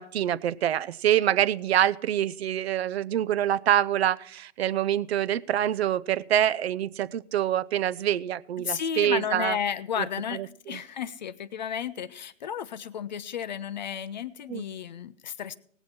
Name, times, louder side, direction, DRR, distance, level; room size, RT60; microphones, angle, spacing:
voice 1, 0.0-9.6 10.0-10.1 10.3-10.8 14.5-14.6, right 11 dB, 55° right, 19 dB, 0.5 m, -26 dB
voice 2, 8.6-15.6, left 8 dB, 40° left, 16 dB, 0.4 m, -33 dB
18.0 x 7.9 x 4.3 m, 0.63 s
hypercardioid pair, 140°, 39 cm